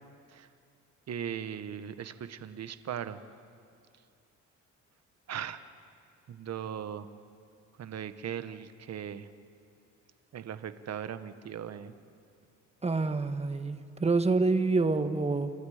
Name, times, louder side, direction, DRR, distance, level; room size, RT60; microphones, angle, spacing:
voice 1, 1.1-3.2 5.3-5.6 6.3-7.1 7.8-9.3 10.3-11.9, right 9 dB, 60° right, 11 dB, 1.3 m, -38 dB
voice 2, 12.8-15.5, right 3 dB, 20° right, 8 dB, 1.5 m, -27 dB
29.5 x 24.0 x 5.1 m, 2.4 s
cardioid pair, 90°, 30 cm